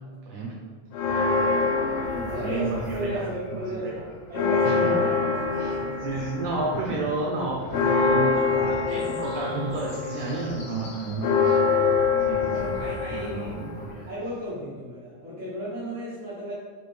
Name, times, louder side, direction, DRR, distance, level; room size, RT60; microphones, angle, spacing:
voice 1, 0.3-0.6 2.4-4.0 4.6-5.1 5.5-11.6 12.2-12.7 13.1-14.1, right 3 dB, 70° right, -3 dB, 2.0 m, -31 dB
sound 1, 0.9-3.3 3.7-14.2, left 5 dB, 80° left, 1.5 m, -26 dB
voice 2, 1.3-4.0 4.3-6.1 12.5-13.5 14.1-16.5, equal, 35° right, -11 dB, 1.3 m, -34 dB
6.9 x 4.9 x 3.3 m, 1.6 s
omnidirectional pair, 3.9 m